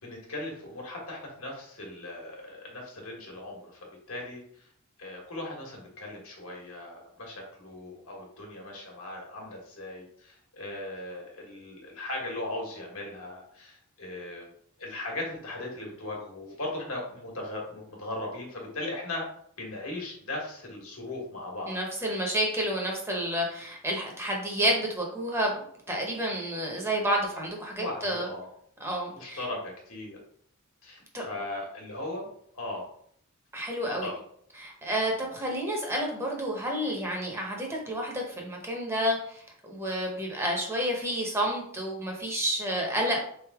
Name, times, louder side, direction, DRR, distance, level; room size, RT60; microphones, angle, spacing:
voice 1, 0.0-4.7 5.0-14.5 14.8-19.3 19.6-21.8 22.0-22.3 27.8-28.5 29.2-30.2 30.8-32.3 32.5-32.9 33.9-34.2, left 2 dB, 75° left, -1 dB, 1.5 m, -38 dB
voice 2, 21.7-25.5 25.9-28.3 28.8-29.4 31.1-31.3 33.5-34.1 34.6-43.2, equal, 10° right, -1 dB, 0.8 m, -30 dB
3.8 x 3.4 x 3.5 m, 0.66 s
head